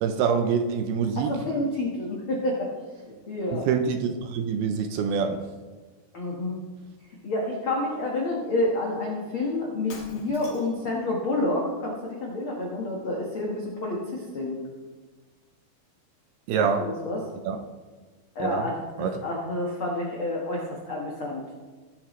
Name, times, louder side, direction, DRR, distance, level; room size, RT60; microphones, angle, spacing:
voice 1, 0.0-1.4 3.5-5.5 16.5-16.9 17.5-17.6 18.4-18.7 19.0-19.2, right 6 dB, 80° right, 6 dB, 2.4 m, -26 dB
voice 2, 1.2-2.7 3.3-3.7 6.1-6.6 7.2-14.6 16.8-17.2 18.3-21.5, left 2 dB, 80° left, -3 dB, 1.1 m, -29 dB
Shatter, 9.9-10.9, left 3 dB, 65° left, 3.5 m, -44 dB
18.5 x 7.9 x 3.2 m, 1.3 s
omnidirectional pair, 4.9 m